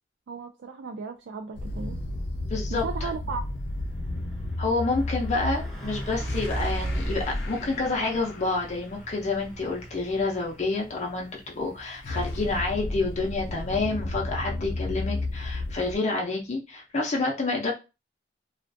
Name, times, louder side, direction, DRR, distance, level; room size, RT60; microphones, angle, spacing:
voice 1, 0.3-2.0 2.7-3.4, right 5 dB, 90° right, 0.3 m, -35 dB
sound 1, 1.5-8.7 11.6-16.0, left 2 dB, 90° left, 0.5 m, -33 dB
voice 2, 2.5-3.1 4.6-17.7, left 3 dB, 40° left, 0.5 m, -28 dB
Truck, 2.7-2.8 3.1-15.7, right 1 dB, 5° left, 0.7 m, -38 dB
2.4 x 2.3 x 2.5 m
head